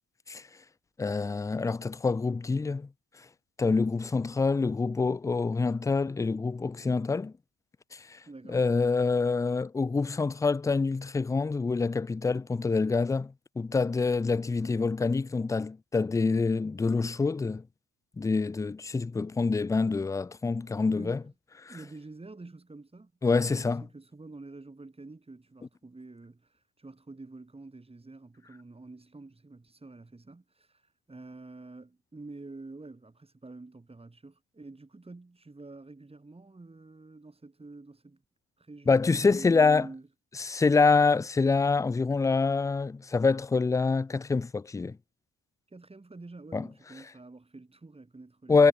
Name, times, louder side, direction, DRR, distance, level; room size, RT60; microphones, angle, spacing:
voice 1, 1.0-2.9 3.6-7.3 8.1-8.2 8.5-17.6 18.2-21.2 23.2-23.8 38.9-39.9 40.4-45.0 46.5-46.7 48.5-48.7, left 4 dB, 10° left, 0.3 m, -26 dB
voice 2, 8.3-8.7 20.8-21.3 21.7-30.8 31.1-38.2 38.6-40.1 45.7-48.7, right 3 dB, 20° right, 6.8 m, -47 dB
cardioid pair, 90°, 30 cm